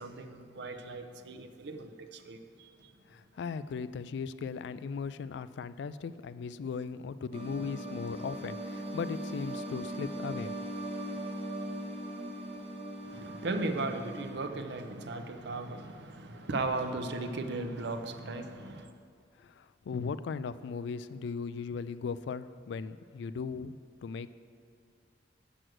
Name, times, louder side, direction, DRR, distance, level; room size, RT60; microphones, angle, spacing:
voice 1, 0.0-2.9 13.0-18.9, right 2 dB, 65° right, 7 dB, 0.6 m, -37 dB
voice 2, 3.1-10.5 19.4-23.8 24.0-24.3, left 5 dB, 70° left, 15 dB, 0.3 m, -38 dB
sound 1, 7.3-14.3, right 1 dB, 35° right, 0.8 m, -39 dB
7.9 x 6.1 x 6.2 m, 2.3 s
head